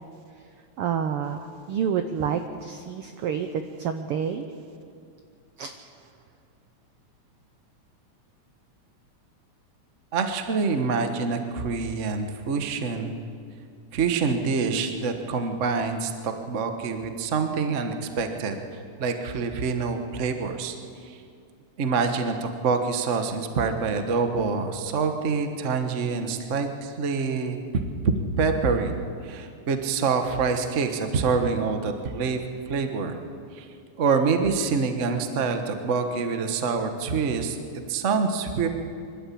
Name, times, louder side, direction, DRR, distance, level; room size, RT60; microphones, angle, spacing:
voice 1, 0.8-4.5 5.6-5.7, right 7 dB, 75° right, 7 dB, 1.3 m, -28 dB
voice 2, 10.1-13.2 13.9-20.8 21.0-21.2 21.8-29.0 29.2-33.2 33.5-33.7 34.0-38.7, right 5 dB, 55° right, 6 dB, 0.8 m, -26 dB
24.5 x 12.5 x 8.5 m, 2.4 s
omnidirectional pair, 3.5 m